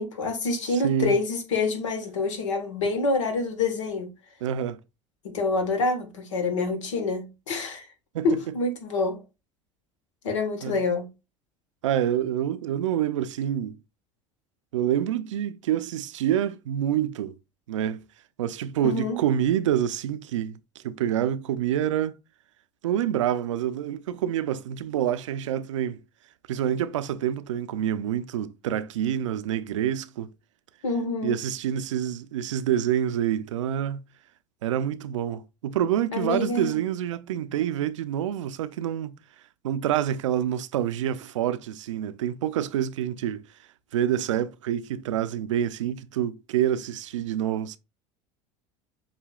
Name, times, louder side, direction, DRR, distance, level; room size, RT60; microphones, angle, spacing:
voice 1, 0.0-4.1 5.2-7.9 8.2-9.2 10.2-11.1 18.8-19.2 30.8-31.3 36.1-36.8, left 3 dB, 90° left, 1.4 m, -27 dB
voice 2, 0.7-1.2 4.4-4.8 8.1-8.4 10.6-10.8 11.8-13.8 14.7-17.3 17.7-18.0 18.4-22.2 22.8-26.0 26.5-30.3 31.2-34.0 34.6-39.1 39.6-43.4 43.9-47.8, right 10 dB, 90° right, 0.4 m, -27 dB
7.3 x 2.8 x 2.3 m
hypercardioid pair, 80°, 16 cm